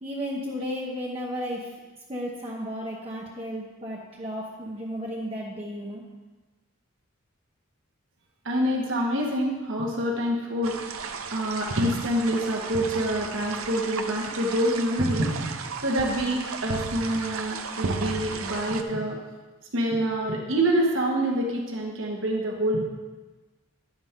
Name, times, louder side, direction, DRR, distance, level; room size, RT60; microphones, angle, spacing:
voice 1, 0.0-1.7 2.1-6.0, equal, 30° right, -3 dB, 1.0 m, -33 dB
voice 2, 8.4-10.8 11.3-19.2 19.7-22.8, right 1 dB, 65° right, -2 dB, 1.7 m, -26 dB
sound 1, 10.6-18.8, right 4 dB, 80° right, 0.7 m, -33 dB
11.5 x 8.8 x 3.8 m, 1.2 s
head